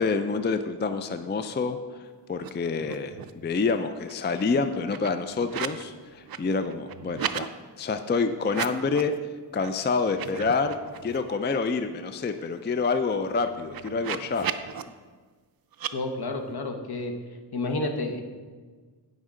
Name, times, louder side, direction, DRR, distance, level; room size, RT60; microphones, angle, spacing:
voice 1, 0.0-7.5 7.8-9.1 9.5-14.5, left 4 dB, 25° left, 9 dB, 0.4 m, -27 dB
sound 1, 2.4-3.4 3.8-5.8 6.1-7.5 8.4-9.2 9.6-9.7 10.1-11.4 11.8-11.9 12.1-14.8 15.7-15.9, right 9 dB, 60° right, 0.5 m, -36 dB
voice 2, 15.9-17.1 17.5-18.2, left 2 dB, 60° left, 5 dB, 1.1 m, -30 dB
15.5 x 5.4 x 3.8 m, 1.5 s
wide cardioid pair, 110°, 42 cm